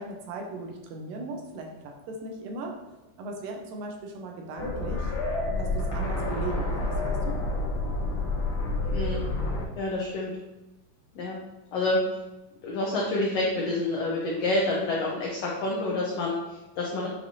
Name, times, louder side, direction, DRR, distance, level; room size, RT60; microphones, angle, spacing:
voice 1, 0.0-2.8 3.2-5.1 5.6-7.4, right 2 dB, 80° right, 2 dB, 2.4 m, -38 dB
sound 1, 4.6-9.6, left 2 dB, 70° left, 2.3 m, -29 dB
voice 2, 9.7-10.3 11.1-11.4 11.7-12.0 12.6-17.1, left 2 dB, 85° left, -3 dB, 1.4 m, -28 dB
8.2 x 4.6 x 2.7 m, 1.0 s
omnidirectional pair, 4.0 m